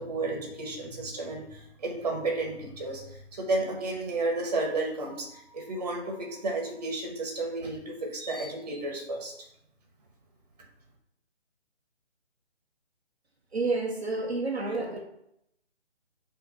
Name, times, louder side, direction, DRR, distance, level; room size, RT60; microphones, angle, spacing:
voice 1, 0.0-9.5, right 2 dB, 35° right, 0 dB, 1.6 m, -32 dB
voice 2, 13.5-15.0, right 3 dB, 65° right, -1 dB, 1.2 m, -29 dB
6.2 x 3.3 x 5.4 m, 0.78 s
figure-of-eight pair, 150°, 35 cm